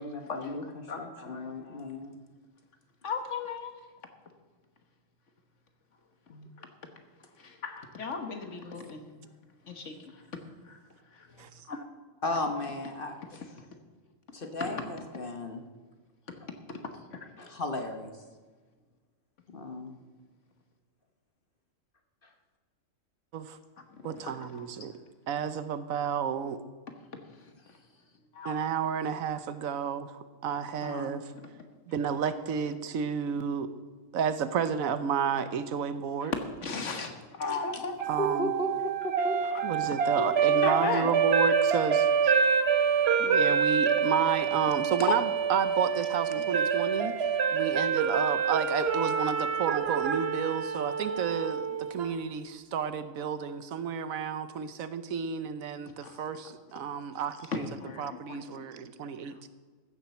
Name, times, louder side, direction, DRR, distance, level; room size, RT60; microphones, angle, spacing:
voice 1, 0.0-2.1 6.3-6.5 9.2-9.3 12.2-13.5 14.3-15.6 17.4-18.2 19.5-20.0 22.2-22.3 30.8-31.1 36.2-36.3 37.5-37.8 38.2-39.4, left 1 dB, 45° left, 5 dB, 1.1 m, -35 dB
voice 2, 0.9-1.9 3.0-3.8 6.6-6.7 7.4-9.1 9.7-10.2 10.6-10.8 11.1-11.3 11.7-11.8 14.7-14.8 16.8-17.5 24.0-24.7 27.4-27.5 28.3-28.5 36.6-37.9 39.5-40.3 40.6-41.1 46.4-46.5 56.0-56.2 57.5-58.7, left 4 dB, 65° left, 6 dB, 1.6 m, -37 dB
voice 3, 24.0-25.0 25.3-26.6 28.4-31.2 31.9-33.7 34.1-36.3 38.1-38.5 39.6-42.4 43.2-47.2 47.5-57.7 58.0-59.5, right 7 dB, 85° right, 12 dB, 1.2 m, -31 dB
sound 1, 38.0-52.1, right 6 dB, 55° right, 0.9 m, -27 dB
14.5 x 7.4 x 7.0 m, 1.4 s
omnidirectional pair, 1.4 m